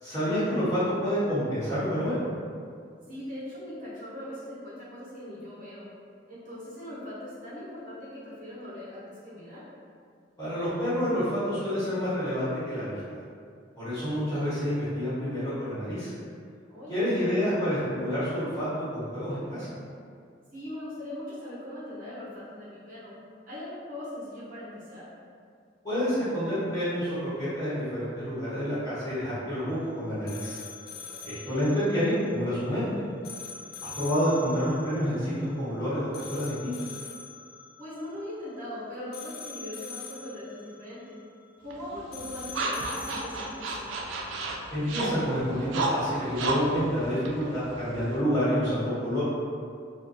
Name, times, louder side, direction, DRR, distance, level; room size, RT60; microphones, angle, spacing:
voice 1, 0.0-2.2 10.4-13.2 13.7-16.1 16.9-19.7 25.8-30.6 31.2-33.0 33.8-36.7 44.7-49.2, equal, 20° left, -14 dB, 1.2 m, -28 dB
voice 2, 3.1-5.9 6.3-9.6 16.7-17.5 20.5-23.1 23.4-25.0 31.1-31.7 37.8-41.2 41.6-43.9, left 1 dB, 50° right, -11 dB, 0.8 m, -40 dB
sound 1, 29.7-44.0, left 5 dB, 55° left, 0.3 m, -45 dB
sound 2, 41.7-48.2, right 2 dB, 80° right, 0.3 m, -33 dB
2.5 x 2.2 x 2.6 m, 2.2 s
head